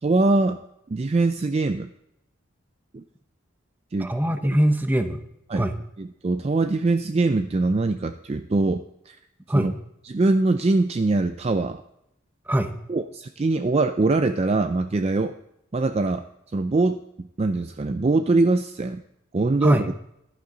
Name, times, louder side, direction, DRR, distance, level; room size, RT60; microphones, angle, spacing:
voice 1, 0.0-0.6 0.9-1.9 2.9-3.0 3.9-4.1 4.4-4.6 5.5-5.7 6.0-9.2 9.5-9.7 10.0-11.8 12.9-15.3 15.7-16.2 16.5-19.0 19.3-19.8, right 3 dB, 30° right, 9 dB, 0.4 m, -23 dB
voice 2, 4.0-5.2 5.5-5.7 9.5-9.7 12.5-12.7 19.6-19.9, right 1 dB, 10° right, 7 dB, 0.8 m, -22 dB
14.5 x 11.5 x 3.9 m, 0.81 s
head